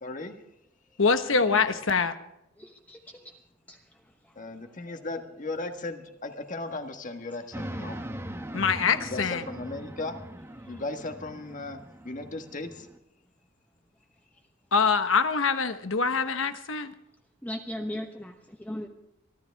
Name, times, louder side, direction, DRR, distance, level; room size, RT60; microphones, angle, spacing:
voice 1, 0.0-0.4 1.3-1.8 4.3-8.0 9.0-10.2 10.7-12.9, left 2 dB, 40° left, 6 dB, 1.6 m, -37 dB
voice 2, 1.0-2.1 8.5-9.4 14.7-16.9, left 5 dB, 70° left, 9 dB, 1.2 m, -24 dB
voice 3, 2.6-3.0 3.7-3.8 17.4-18.9, left 1 dB, 10° left, 3 dB, 1.1 m, -37 dB
sound 1, 7.5-13.0, right 1 dB, 15° right, 1.2 m, -40 dB
23.5 x 13.0 x 3.5 m, 0.83 s
head